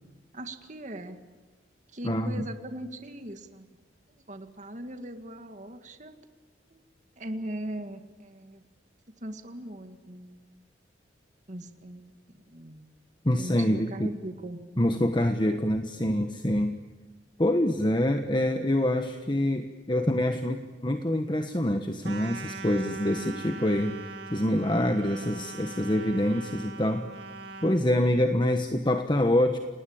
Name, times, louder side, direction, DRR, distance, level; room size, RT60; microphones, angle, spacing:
voice 1, 0.3-1.2 1.9-3.7 4.3-6.2 6.7-6.8 7.2-8.6 9.2-10.6 11.5-12.9 13.4-14.6, right 1 dB, 40° right, 7 dB, 2.0 m, -40 dB
voice 2, 2.0-2.4 13.2-14.1 14.8-16.8 17.4-24.0 24.3-27.1 27.6-29.6, left 1 dB, 25° left, 6 dB, 1.3 m, -26 dB
sound 1, 22.0-27.8, right 3 dB, 65° right, 3.4 m, -41 dB
30.0 x 19.5 x 8.8 m, 1.4 s
head